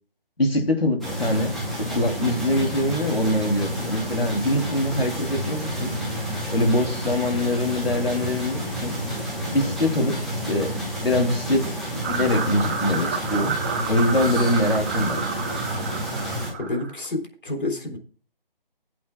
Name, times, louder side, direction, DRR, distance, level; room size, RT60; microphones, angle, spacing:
voice 1, 0.4-1.5 1.8-5.9 6.5-9.0 9.5-10.2 10.5-11.7 12.0-13.5 13.9-15.2, left 1 dB, 85° left, 3 dB, 3.2 m, -23 dB
sound 1, 1.0-16.5, equal, ahead, 1.2 m, -30 dB
sound 2, 12.0-17.1, right 5 dB, 15° right, 1.0 m, -30 dB
voice 2, 16.6-18.0, left 2 dB, 60° left, 3 dB, 3.7 m, -29 dB
18.5 x 8.5 x 2.3 m, 0.40 s
figure-of-eight pair, 155°, 29 cm